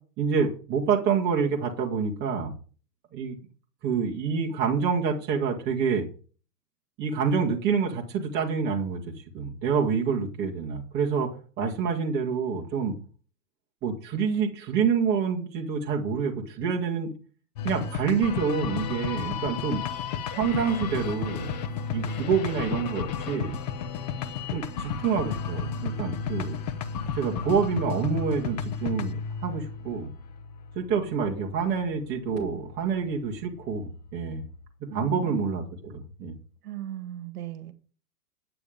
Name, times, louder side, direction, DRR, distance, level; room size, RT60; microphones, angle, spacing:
voice 1, 0.2-2.5 3.1-3.4 3.8-6.1 7.0-11.3 11.6-13.0 13.8-17.1 17.6-19.8 20.4-21.5 21.9-23.6 24.5-26.6 27.1-30.1 30.8-34.5 34.9-36.4, right 6 dB, 20° right, -1 dB, 1.8 m, -27 dB
sound 1, 17.6-34.7, left 6 dB, 25° left, 0.7 m, -34 dB
voice 2, 34.9-35.5 36.6-37.7, right 13 dB, 65° right, 10 dB, 1.8 m, -38 dB
10.0 x 8.8 x 5.1 m, 0.40 s
hypercardioid pair, 160°, 48 cm